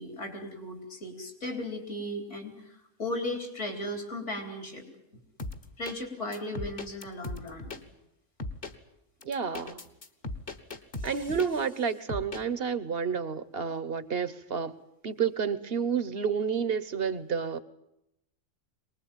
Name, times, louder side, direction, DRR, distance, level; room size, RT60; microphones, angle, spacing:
voice 1, 0.0-4.8 5.8-7.7 11.3-11.4, left 1 dB, 70° left, 4.3 m, -36 dB
sound 1, 5.4-6.0 6.3-7.8 8.4-8.7 9.2-11.8 12.1-12.4, left 2 dB, 45° left, 1.7 m, -38 dB
voice 2, 9.3-9.8 11.0-14.7 15.0-17.6, right 6 dB, 50° right, 1.2 m, -30 dB
23.5 x 20.0 x 9.1 m
omnidirectional pair, 1.3 m